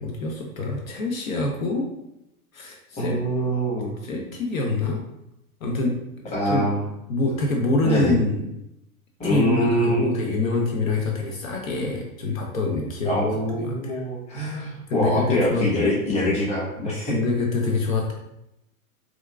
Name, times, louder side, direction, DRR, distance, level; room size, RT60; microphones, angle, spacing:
voice 1, 0.0-1.9 2.5-3.2 4.0-5.0 5.6-6.0 6.5-6.7 7.1-8.5 9.2-13.2 13.6-14.0 14.9-15.7 17.1-18.1, left 2 dB, 65° left, 1 dB, 0.7 m, -25 dB
voice 2, 3.0-3.9 6.3-6.8 7.8-8.1 9.2-10.1 13.0-17.1, equal, 15° left, -6 dB, 1.1 m, -24 dB
4.4 x 2.5 x 2.3 m, 0.84 s
figure-of-eight pair, 100°, 44 cm